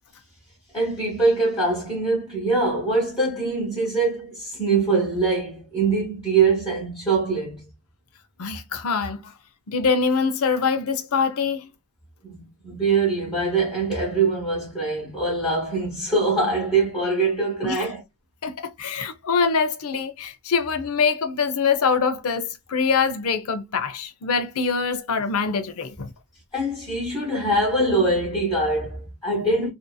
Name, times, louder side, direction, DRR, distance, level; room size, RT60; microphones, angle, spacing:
voice 1, 0.7-7.7 12.2-18.0 26.5-29.7, right 3 dB, 20° left, 1.0 m, -23 dB
voice 2, 8.4-9.3 9.7-11.7 17.6-17.9 18.4-26.1, left 5 dB, 70° left, 0.5 m, -24 dB
2.7 x 2.6 x 2.2 m
head